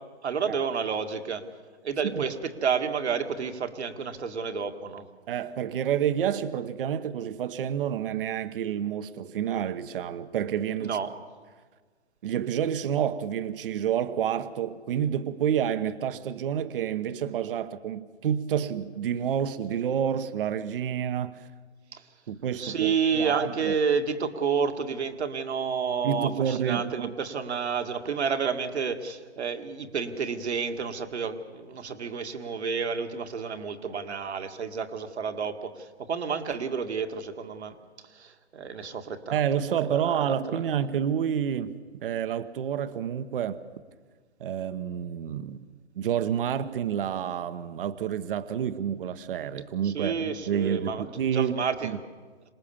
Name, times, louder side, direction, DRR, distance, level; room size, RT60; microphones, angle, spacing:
voice 1, 0.2-1.4 1.8-5.0 10.8-11.1 21.9-22.0 22.6-37.8 38.1-39.4 39.7-40.6 49.8-52.0, right 6 dB, 70° right, 2.1 m, -30 dB
voice 2, 5.3-11.0 12.2-21.5 22.3-23.7 26.0-27.1 39.3-43.6 44.4-45.7 46.0-51.5 51.8-52.0, right 9 dB, 50° right, 1.1 m, -29 dB
26.5 x 19.0 x 7.2 m
hypercardioid pair, 135°, 34 cm